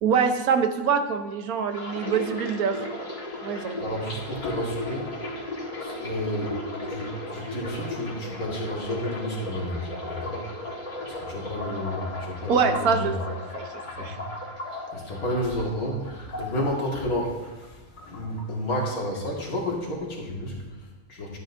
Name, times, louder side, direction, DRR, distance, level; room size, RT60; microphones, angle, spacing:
voice 1, 0.0-2.9 3.4-3.7 12.5-13.1 13.5-13.7 14.0-14.2, right 6 dB, 80° right, 7 dB, 1.3 m, -24 dB
sound 1, 1.7-17.7 18.0-18.9 19.1-19.5, left 1 dB, 35° left, 1.7 m, -36 dB
voice 2, 3.8-5.5 5.8-10.5 11.0-13.2 13.9-14.2 14.7-21.4, equal, 80° left, -2 dB, 2.4 m, -31 dB
11.5 x 9.3 x 2.6 m, 1.2 s
omnidirectional pair, 1.5 m